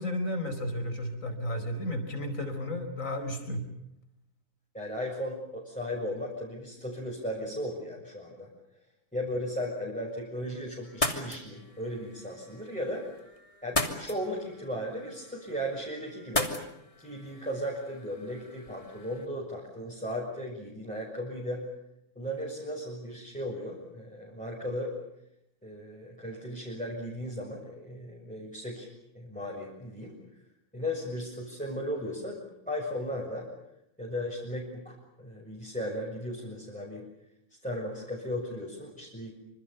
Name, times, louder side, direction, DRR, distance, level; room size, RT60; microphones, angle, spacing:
voice 1, 0.0-3.6, left 1 dB, 55° left, 7 dB, 5.2 m, -33 dB
voice 2, 4.7-8.5 9.1-13.1 13.6-16.5 17.0-21.6 22.1-24.9 25.6-28.9 29.1-30.2 30.7-32.4 32.7-33.5 34.0-37.1 37.6-39.3, equal, 5° left, -3 dB, 6.8 m, -36 dB
sound 1, 10.8-19.2, left 1 dB, 20° left, 2.9 m, -37 dB
27.5 x 26.5 x 7.0 m, 0.80 s
omnidirectional pair, 1.6 m